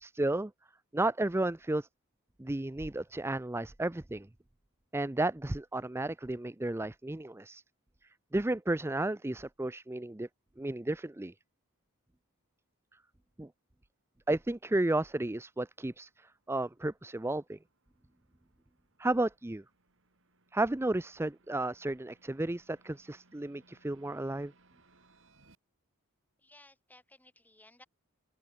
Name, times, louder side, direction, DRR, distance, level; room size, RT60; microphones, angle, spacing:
voice 1, 0.0-0.5 0.9-1.9 2.4-4.3 4.9-7.6 8.3-10.3 10.6-11.3 13.4-13.5 14.3-17.6 19.0-19.6 20.5-24.5, right 2 dB, 10° right, 0.5 m, -33 dB
sound 1, 14.1-25.6, right 2 dB, 60° right, 6.3 m, -69 dB
voice 2, 26.4-27.9, left 2 dB, 10° left, 3.4 m, -59 dB
open air
head